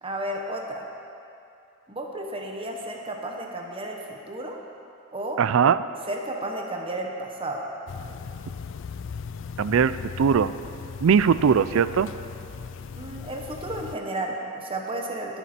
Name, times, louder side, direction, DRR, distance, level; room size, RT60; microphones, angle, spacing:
voice 1, 0.0-0.9 1.9-4.6 5.1-5.5 6.1-7.7 12.9-15.4, right 1 dB, 25° right, 1 dB, 1.1 m, -33 dB
voice 2, 5.4-5.8 9.6-10.5 11.0-12.1, right 7 dB, 65° right, 14 dB, 0.4 m, -20 dB
sound 1, 7.9-14.0, left 5 dB, 60° left, 0.4 m, -38 dB
20.5 x 7.1 x 4.4 m, 2.7 s
head